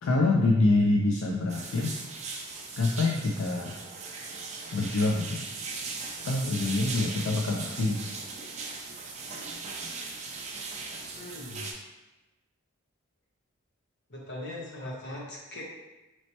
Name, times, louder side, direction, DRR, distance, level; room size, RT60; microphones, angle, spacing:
voice 1, 0.0-1.9 2.8-3.7 4.7-5.4 6.3-8.1, left 2 dB, 70° left, -1 dB, 0.4 m, -26 dB
sound 1, 1.5-11.7, right 4 dB, 35° right, 0.4 m, -38 dB
voice 2, 11.1-11.7 14.1-15.6, left 1 dB, 55° left, -4 dB, 0.9 m, -40 dB
4.1 x 3.1 x 2.8 m, 1.1 s
head